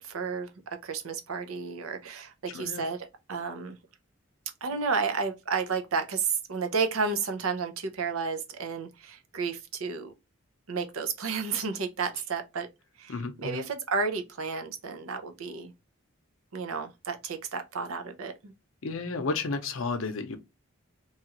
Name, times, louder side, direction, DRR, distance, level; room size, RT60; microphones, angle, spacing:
voice 1, 0.0-0.5 0.8-3.8 4.6-10.1 10.7-12.7 13.0-15.7 16.5-18.5, right 5 dB, 85° right, 0.6 m, -32 dB
voice 2, 2.5-2.8 13.1-13.6 18.8-20.4, left 3 dB, 75° left, 0.6 m, -32 dB
3.0 x 2.4 x 2.9 m
head